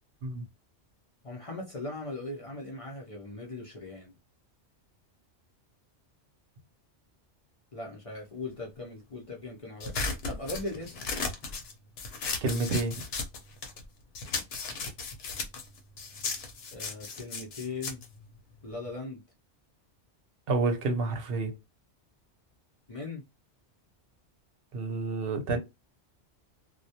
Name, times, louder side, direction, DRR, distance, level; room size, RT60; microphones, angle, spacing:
voice 1, 1.2-4.1 7.7-9.9 10.2-11.0 16.7-18.0 18.6-19.2 22.9-23.2, left 2 dB, 45° left, 0.4 m, -39 dB
sound 1, 9.8-13.9 14.1-19.0, left 4 dB, 65° left, 0.8 m, -36 dB
voice 2, 12.4-13.0 20.5-21.5 24.7-25.6, right 3 dB, 60° right, 0.8 m, -29 dB
2.2 x 2.1 x 2.7 m
omnidirectional pair, 1.2 m